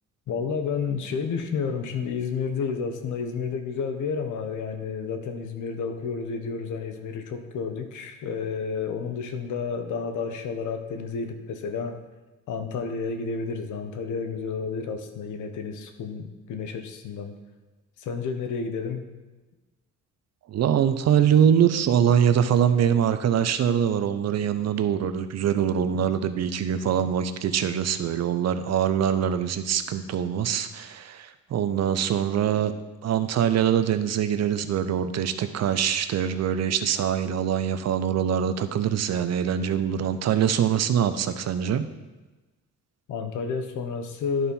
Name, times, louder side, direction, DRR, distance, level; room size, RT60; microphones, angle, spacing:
voice 1, 0.3-12.0 12.5-17.3 18.0-19.0 43.1-44.5, left 5 dB, 80° left, 7 dB, 1.1 m, -31 dB
voice 2, 20.5-32.7 33.0-41.8, right 9 dB, 60° right, 10 dB, 0.7 m, -23 dB
11.0 x 4.3 x 5.5 m, 1.2 s
cardioid pair, 90°, 30 cm